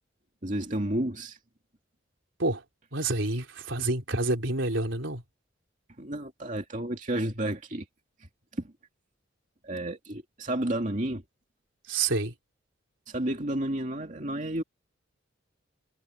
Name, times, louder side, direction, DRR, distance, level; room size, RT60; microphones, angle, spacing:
voice 1, 0.4-1.4 6.0-7.9 8.2-8.7 9.6-11.2 13.1-14.6, right 1 dB, 40° right, 2.5 m, -31 dB
voice 2, 2.9-5.2 11.9-12.3, right 2 dB, 70° right, 3.9 m, -28 dB
head